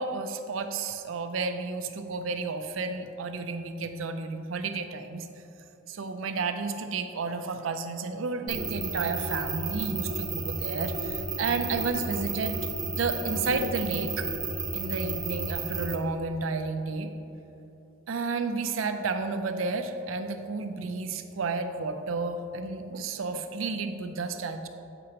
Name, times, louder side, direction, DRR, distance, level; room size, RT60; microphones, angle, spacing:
voice 1, 0.0-5.3 5.9-12.6 12.8-14.3 14.7-17.1 18.1-24.7, right 4 dB, 90° right, 7 dB, 0.5 m, -31 dB
sound 1, 8.5-16.0, right 3 dB, 20° right, 0.6 m, -32 dB
8.4 x 6.8 x 2.9 m, 2.9 s
head